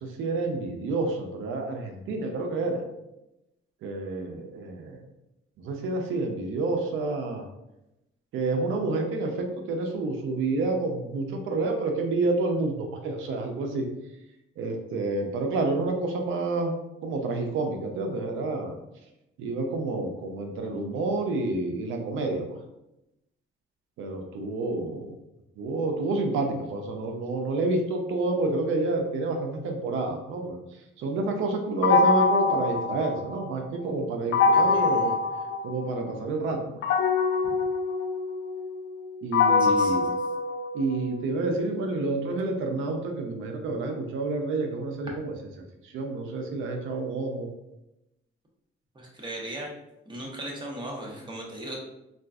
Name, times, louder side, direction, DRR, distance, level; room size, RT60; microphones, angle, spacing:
voice 1, 0.0-2.8 3.8-5.0 5.6-7.4 8.3-13.9 14.6-16.7 17.0-18.8 19.4-22.6 24.0-25.2 25.6-30.6 31.0-35.1 35.6-36.8 39.2-40.1 40.7-45.3 45.8-47.5, right 3 dB, 85° right, 3 dB, 0.5 m, -29 dB
sound 1, 31.8-33.6 34.3-36.1 36.8-41.1, left 4 dB, 70° left, 0.5 m, -24 dB
voice 2, 34.5-35.2 37.5-37.6 39.6-40.1 48.9-49.7 50.1-51.8, right 1 dB, 25° right, -2 dB, 0.9 m, -38 dB
3.7 x 2.4 x 2.3 m, 0.90 s
cardioid pair, 90°, 20 cm